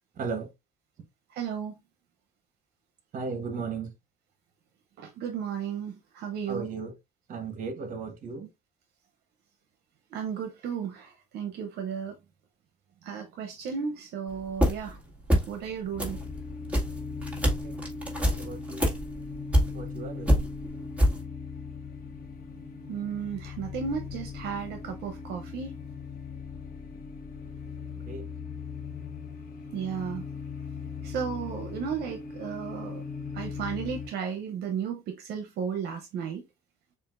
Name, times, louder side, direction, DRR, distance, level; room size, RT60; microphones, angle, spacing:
voice 1, 0.2-0.5 3.1-3.9 6.5-6.9 7.3-8.5 17.6-17.9 18.2-19.0 19.7-20.5 28.0-28.3, right 4 dB, 50° right, 1.1 m, -36 dB
voice 2, 1.3-1.8 5.0-6.7 10.1-12.2 13.0-15.0 15.5-16.2 22.9-25.7 29.7-30.2 31.0-33.0 33.3-36.4, right 7 dB, 75° right, 0.7 m, -34 dB
sound 1, 14.3-15.0 15.2-15.7 16.0-20.0 20.2-21.2, equal, 10° right, 1.9 m, -25 dB
sound 2, 15.9-34.1, left 5 dB, 60° left, 0.9 m, -39 dB
6.9 x 2.5 x 2.5 m
cardioid pair, 110°, 17 cm